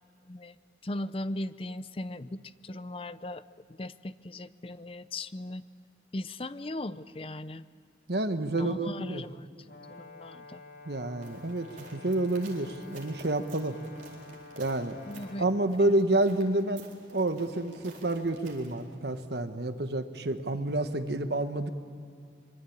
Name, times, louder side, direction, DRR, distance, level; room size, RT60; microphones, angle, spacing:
voice 1, 0.3-0.6 0.8-3.4 3.8-5.6 6.1-7.7 8.5-9.5 10.0-10.6 15.1-15.4 15.8-16.0, left 1 dB, 30° left, 14 dB, 0.6 m, -38 dB
voice 2, 8.1-9.2 10.9-13.7 14.6-15.0 15.4-16.8 17.1-21.7, right 2 dB, 70° right, 8 dB, 1.4 m, -29 dB
Brass instrument, 9.6-15.5, left 3 dB, 70° left, 3.0 m, -49 dB
sound 1, 11.2-18.8, right 3 dB, 45° right, 4.2 m, -53 dB
25.0 x 23.5 x 8.7 m, 2.2 s
head